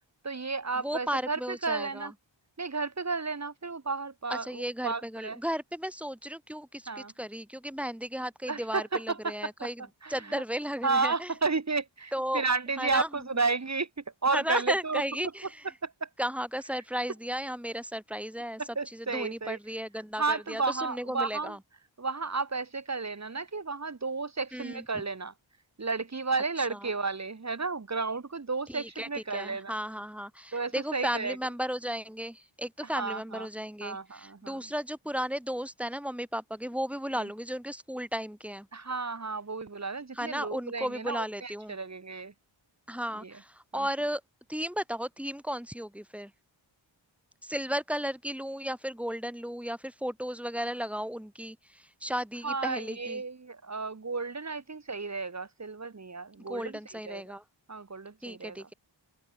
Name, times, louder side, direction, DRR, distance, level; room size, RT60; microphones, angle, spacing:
voice 1, 0.2-2.1 2.6-5.4 6.9-7.1 8.5-10.4 10.8-13.9 14.2-15.0 15.8-16.1 18.6-19.6 20.2-21.6 22.0-25.3 25.8-29.7 30.5-31.4 32.8-33.5 33.8-34.7 37.2-37.3 38.7-42.3 43.2-43.3 43.7-43.9 52.4-56.8 57.0-57.2 57.7-58.6, right 4 dB, 35° right, 1.4 m, -32 dB
voice 2, 0.8-2.1 4.3-9.8 10.1-11.3 12.1-12.4 12.8-13.1 14.3-15.7 16.2-18.6 18.9-21.6 24.5-25.0 26.6-26.8 28.7-38.7 40.1-41.8 42.9-44.2 44.5-46.3 47.4-53.2 56.5-57.4 58.2-58.7, equal, 5° right, 1.4 m, -35 dB
open air
wide cardioid pair, 75°, 48 cm